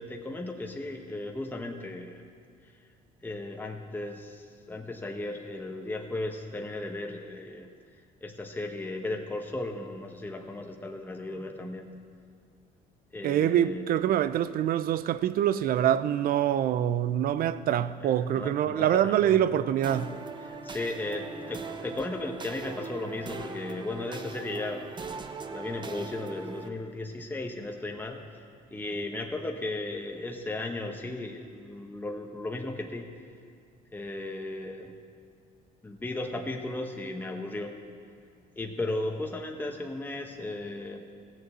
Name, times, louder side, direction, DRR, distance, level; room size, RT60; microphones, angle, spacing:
voice 1, 0.0-2.2 2.6-2.7 3.2-7.7 8.2-12.0 13.1-13.9 18.0-19.4 20.4-24.9 25.5-28.2 28.7-33.1 33.9-35.0 35.8-37.8 38.6-41.0, left 2 dB, 10° left, 1.0 m, -36 dB
voice 2, 13.2-20.1, right 11 dB, 60° right, 0.5 m, -25 dB
sound 1, 19.8-26.7, right 4 dB, 25° right, 0.8 m, -40 dB
15.5 x 7.0 x 8.1 m
cardioid pair, 110°, 17 cm